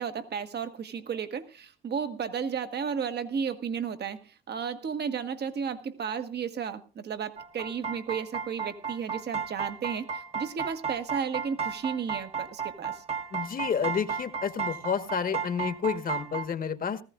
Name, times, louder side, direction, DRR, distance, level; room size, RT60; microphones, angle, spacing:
voice 1, 0.0-13.0, right 7 dB, 55° right, 9 dB, 1.4 m, -33 dB
sound 1, 7.4-16.5, right 6 dB, 30° right, 1.1 m, -34 dB
voice 2, 13.3-17.0, left 7 dB, 45° left, 10 dB, 1.3 m, -30 dB
19.0 x 14.5 x 2.4 m, 0.32 s
cardioid pair, 90°, 20 cm